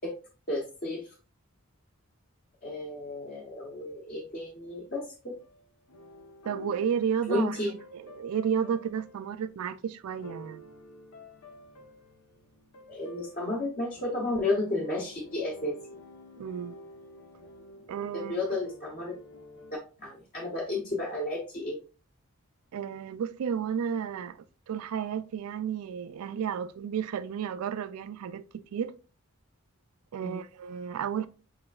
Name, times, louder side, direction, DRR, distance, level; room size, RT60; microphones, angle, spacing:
voice 1, 0.5-1.1 2.6-5.4 7.3-7.7 12.9-15.8 18.1-19.2 20.0-21.8 30.2-30.4, left 2 dB, 40° left, 0.8 m, -32 dB
sound 1, 5.4-19.8, left 1 dB, 90° left, 1.0 m, -50 dB
voice 2, 6.5-10.6 16.4-16.8 17.9-18.4 22.7-28.9 30.1-31.3, right 8 dB, 80° right, 0.3 m, -32 dB
4.8 x 4.2 x 2.3 m
head